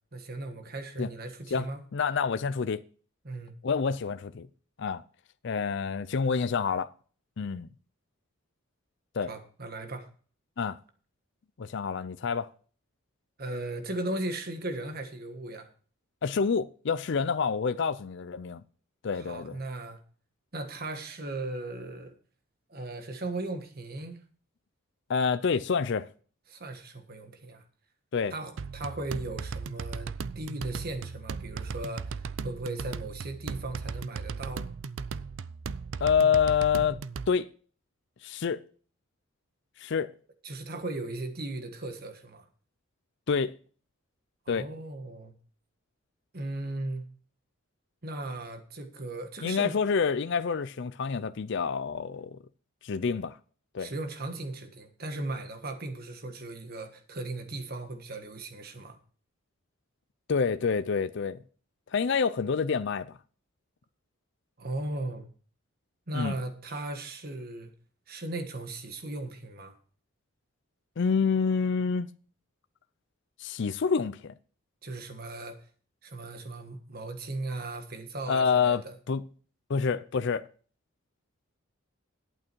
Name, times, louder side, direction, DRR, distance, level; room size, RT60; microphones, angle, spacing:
voice 1, 0.1-1.8 3.2-3.5 9.3-10.1 13.4-15.7 19.1-20.0 20.5-22.1 22.7-24.2 26.5-27.6 28.3-34.7 40.4-42.4 44.5-45.3 46.3-47.0 48.0-49.7 53.8-59.0 64.6-65.3 66.1-67.7 68.1-69.7 74.8-75.6 76.0-78.9, right 2 dB, 45° right, 1.5 m, -37 dB
voice 2, 1.5-2.8 3.6-4.5 4.8-5.0 5.4-6.9 7.4-7.7 9.1-9.3 10.6-10.8 11.6-12.5 16.2-18.6 19.0-19.6 25.1-26.1 28.1-28.3 36.0-37.0 37.3-37.5 38.2-38.6 39.8-40.1 43.3-43.6 44.5-44.7 49.4-52.4 52.8-53.4 53.7-53.9 60.3-61.4 61.9-63.2 66.1-66.4 71.0-72.1 73.4-74.3 78.3-79.2 79.7-80.5, left 6 dB, 55° left, 0.4 m, -27 dB
sound 1, 28.6-37.3, right 5 dB, 60° right, 0.4 m, -37 dB
11.0 x 8.8 x 4.5 m
head